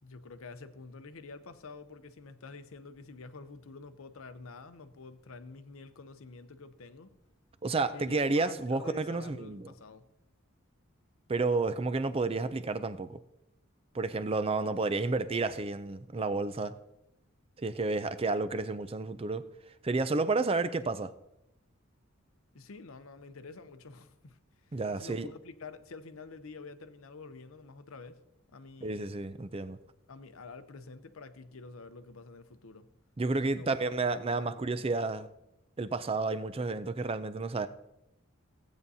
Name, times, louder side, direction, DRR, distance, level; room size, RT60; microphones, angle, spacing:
voice 1, 0.0-7.2 7.9-10.1 22.5-24.4 24.6-28.2 28.5-29.1 30.1-32.9 33.5-34.9, left 4 dB, 75° left, 0.7 m, -48 dB
voice 2, 7.6-9.7 11.3-13.2 13.9-16.7 17.6-19.5 19.8-21.1 24.7-25.3 28.8-29.8 33.2-35.3 35.8-37.7, right 3 dB, 25° right, 0.4 m, -31 dB
16.0 x 8.9 x 2.8 m
head